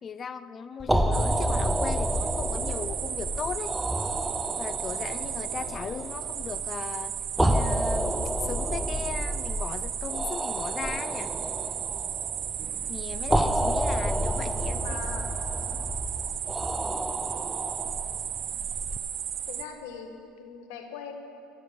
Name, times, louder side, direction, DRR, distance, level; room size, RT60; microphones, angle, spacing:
voice 1, 0.0-3.8 4.6-7.1 7.4-11.3 12.9-15.0 15.7-15.9, left 6 dB, 35° left, 13 dB, 0.5 m, -37 dB
sound 1, 0.8-19.0, equal, 5° right, 0.6 m, -30 dB
sound 2, 1.1-19.7, right 9 dB, 50° right, 0.8 m, -34 dB
voice 2, 14.8-15.3 18.5-18.7 19.5-21.1, left 6 dB, 80° left, 4 dB, 1.6 m, -41 dB
13.5 x 6.4 x 9.4 m, 2.5 s
supercardioid pair, 85°, 0 cm